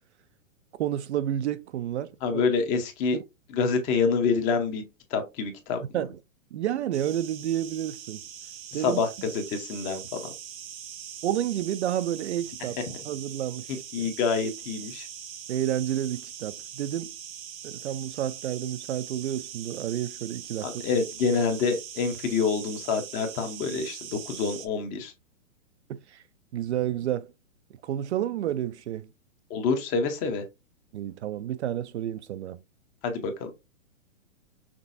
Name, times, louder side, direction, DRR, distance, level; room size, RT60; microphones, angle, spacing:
voice 1, 0.8-2.4 3.1-3.2 5.9-6.2 6.5-8.2 8.7-9.0 11.2-12.7 13.0-14.1 15.5-17.1 17.6-20.8 25.9-26.2 26.5-27.3 27.8-29.1 30.9-32.6, right 11 dB, 60° right, 0.5 m, -30 dB
voice 2, 2.2-3.2 3.5-4.8 5.1-5.8 8.7-10.3 13.9-15.1 20.6-25.1 29.5-30.4 33.0-33.5, left 5 dB, 20° left, 0.7 m, -27 dB
sound 1, 6.9-24.7, right 9 dB, 85° right, 1.0 m, -42 dB
6.0 x 3.3 x 2.6 m
hypercardioid pair, 155°, 39 cm